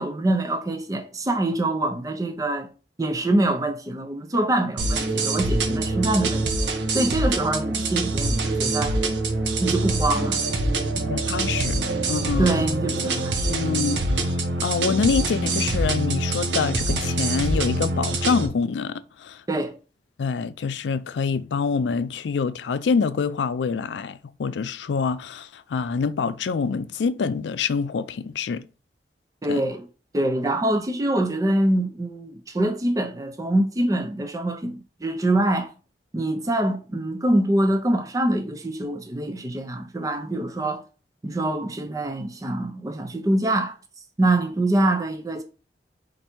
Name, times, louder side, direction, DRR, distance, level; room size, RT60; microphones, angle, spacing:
voice 1, 0.0-2.7 3.0-6.5 6.9-9.0 9.6-10.4 12.4-13.5 19.5-19.7 29.4-29.9 30.1-35.7 36.1-40.8 41.2-43.7 44.2-45.4, right 1 dB, 20° right, 0.4 m, -24 dB
sound 1, 4.8-18.5, right 2 dB, 85° right, 0.7 m, -25 dB
voice 2, 11.0-11.8 12.1-12.5 13.5-19.4 20.2-28.6 29.5-29.6, left 5 dB, 85° left, 0.4 m, -26 dB
4.5 x 2.6 x 4.3 m
head